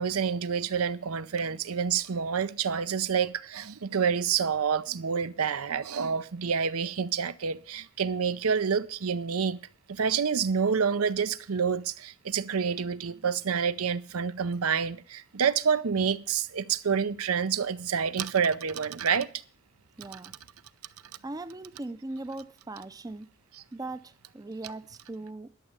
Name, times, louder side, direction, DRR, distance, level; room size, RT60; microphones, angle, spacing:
voice 1, 0.0-9.6 9.9-19.3 20.1-20.2, right 6 dB, 85° right, 0.6 m, -28 dB
voice 2, 20.0-20.4 21.2-23.3 23.7-25.5, right 2 dB, 15° right, 0.4 m, -39 dB
12.0 x 6.5 x 8.2 m
head